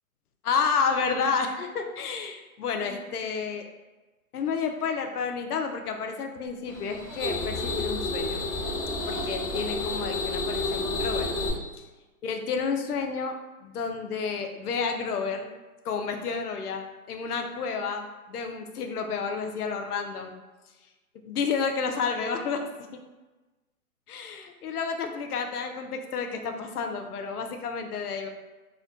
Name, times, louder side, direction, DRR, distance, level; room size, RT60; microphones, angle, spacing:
voice 1, 0.4-3.7 4.3-8.4 9.1-11.3 12.2-15.5 15.8-20.3 21.3-22.6 22.9-23.0 24.1-28.3, left 5 dB, 85° left, 5 dB, 0.5 m, -30 dB
sound 1, 6.7-11.5, left 2 dB, 10° right, 1.1 m, -30 dB
2.8 x 2.1 x 2.5 m, 1.2 s
hypercardioid pair, 130°, 44 cm